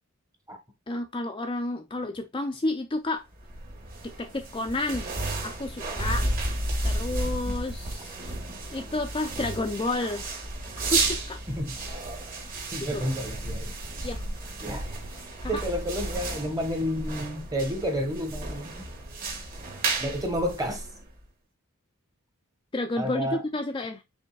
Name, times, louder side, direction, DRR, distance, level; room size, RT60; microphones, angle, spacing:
voice 1, 0.9-3.2 4.0-5.1 5.4-6.3 6.8-8.1 8.7-10.3 10.9-11.4 12.9-13.0 14.0-14.2 15.5-15.6 22.7-24.0, left 2 dB, 25° left, 0.5 m, -30 dB
sound 1, 3.4-21.2, right 2 dB, 40° right, 1.8 m, -33 dB
voice 2, 11.5-11.8 12.7-13.7 14.6-14.9 15.5-18.9 20.0-20.9 23.0-23.4, equal, 15° right, 1.1 m, -30 dB
5.2 x 3.5 x 2.3 m
head